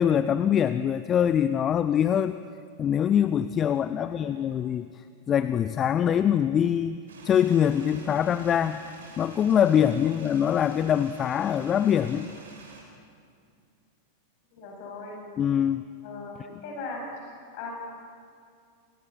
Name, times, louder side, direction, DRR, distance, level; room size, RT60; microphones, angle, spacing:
voice 1, 0.0-2.4 2.8-8.8 9.2-12.3 15.4-15.8, left 9 dB, 25° left, 13 dB, 0.7 m, -24 dB
voice 2, 4.0-4.4 14.5-15.2 16.0-17.7, left 3 dB, 45° left, 0 dB, 8.0 m, -39 dB
sound 1, 7.1-12.8, right 2 dB, 65° right, 6.3 m, -47 dB
29.0 x 24.5 x 6.1 m, 2.3 s
figure-of-eight pair, 90°, 0 cm